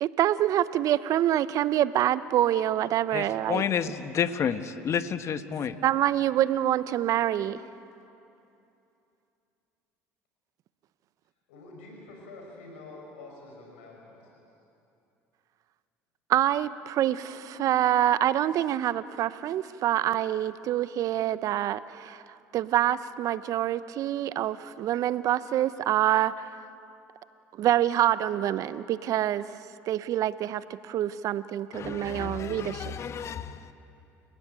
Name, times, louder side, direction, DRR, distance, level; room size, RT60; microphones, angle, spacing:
voice 1, 0.0-3.6 5.8-7.6 16.3-22.2 22.5-26.6 27.6-29.4 29.9-32.9, right 12 dB, 60° right, 15 dB, 0.8 m, -26 dB
voice 2, 3.1-5.8 17.5-17.6 31.7-33.7, left 7 dB, 45° left, 11 dB, 1.3 m, -31 dB
voice 3, 11.5-14.2, left 2 dB, 85° left, 0 dB, 5.5 m, -46 dB
29.5 x 16.5 x 9.0 m, 2.7 s
hypercardioid pair, 75°, 7 cm